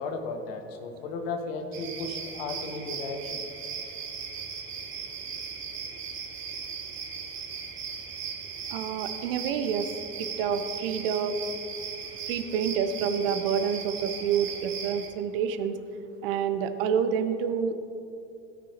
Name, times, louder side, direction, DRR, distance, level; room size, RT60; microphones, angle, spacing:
voice 1, 0.0-3.4, left 3 dB, 60° left, 5 dB, 1.2 m, -35 dB
sound 1, 1.7-15.1, right 6 dB, 35° right, 1.5 m, -37 dB
voice 2, 8.7-9.9 10.2-11.4 12.3-15.8 16.2-17.7, right 7 dB, 55° right, 9 dB, 0.7 m, -28 dB
16.5 x 6.1 x 3.0 m, 2.7 s
figure-of-eight pair, 70°, 33 cm